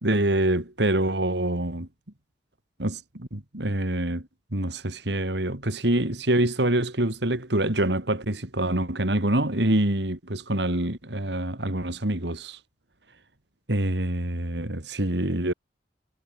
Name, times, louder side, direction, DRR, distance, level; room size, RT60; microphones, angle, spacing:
voice 1, 0.0-1.9 2.8-12.6 13.7-15.5, right 1 dB, 70° right, 3.2 m, -26 dB
head